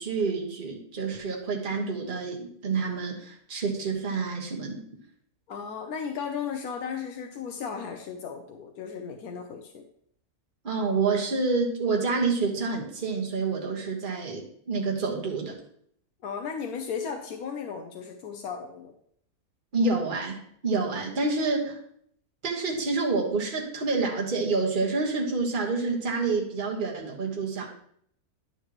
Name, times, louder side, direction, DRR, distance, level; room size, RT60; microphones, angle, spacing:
voice 1, 0.0-4.8 10.6-15.5 19.7-21.8 22.4-27.7, right 4 dB, 35° right, -1 dB, 1.5 m, -28 dB
voice 2, 5.5-9.8 16.2-18.9, left 6 dB, 75° left, 3 dB, 1.3 m, -35 dB
11.0 x 6.8 x 3.0 m, 0.65 s
omnidirectional pair, 1.6 m